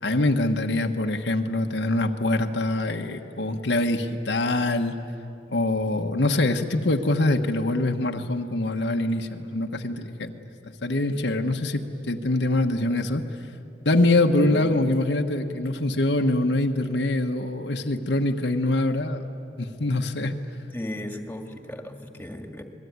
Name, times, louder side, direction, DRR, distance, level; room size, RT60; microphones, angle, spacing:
voice 1, 0.0-5.0 5.5-10.3 10.6-13.2 13.8-19.2 19.6-20.4, left 2 dB, 75° left, 4 dB, 1.3 m, -24 dB
voice 2, 20.7-22.6, left 1 dB, 10° left, 5 dB, 1.9 m, -36 dB
27.0 x 21.0 x 9.6 m, 2.8 s
head